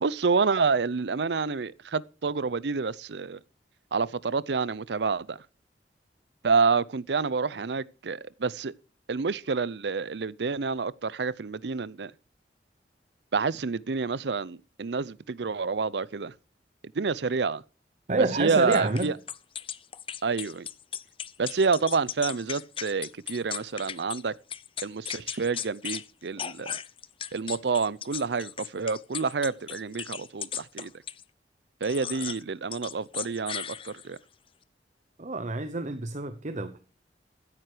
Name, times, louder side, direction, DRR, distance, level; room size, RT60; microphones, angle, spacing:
voice 1, 0.0-3.4 3.9-5.4 6.4-8.7 9.1-12.1 13.3-16.3 16.9-17.6 18.4-19.1 20.2-20.7 21.4-24.3 24.8-26.8 27.3-30.9 31.8-34.2, right 4 dB, 75° right, 0.6 m, -28 dB
voice 2, 18.1-19.1 35.2-36.8, right 2 dB, 45° right, 1.0 m, -28 dB
sound 1, 18.7-24.2 24.5-26.1 26.4-31.2 31.8-32.4 32.7-34.2, left 9 dB, 30° left, 0.6 m, -37 dB
15.5 x 9.2 x 5.0 m
head